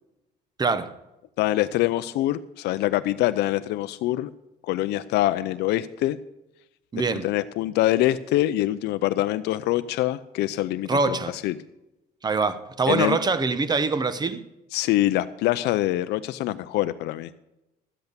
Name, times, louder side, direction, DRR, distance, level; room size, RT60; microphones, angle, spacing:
voice 1, 0.6-0.9 6.9-7.3 10.9-11.3 12.2-14.4, right 4 dB, 25° right, 0.9 m, -24 dB
voice 2, 1.4-4.3 4.7-6.2 7.2-11.5 12.9-13.2 14.7-17.3, left 15 dB, 80° left, 0.5 m, -24 dB
12.0 x 8.0 x 6.8 m
cardioid pair, 110°, 17 cm